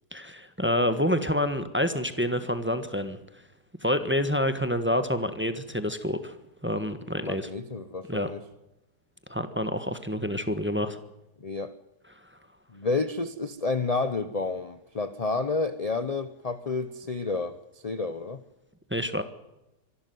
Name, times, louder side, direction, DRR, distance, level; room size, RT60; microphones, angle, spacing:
voice 1, 0.1-3.2 3.8-6.3 6.6-7.5 8.1-8.3 9.3-11.0 18.9-19.2, left 1 dB, 5° right, 10 dB, 1.2 m, -27 dB
voice 2, 7.1-8.4 11.4-11.7 12.7-17.6 17.8-18.4, left 3 dB, 35° left, 12 dB, 0.6 m, -30 dB
25.0 x 12.5 x 9.4 m, 0.95 s
omnidirectional pair, 1.9 m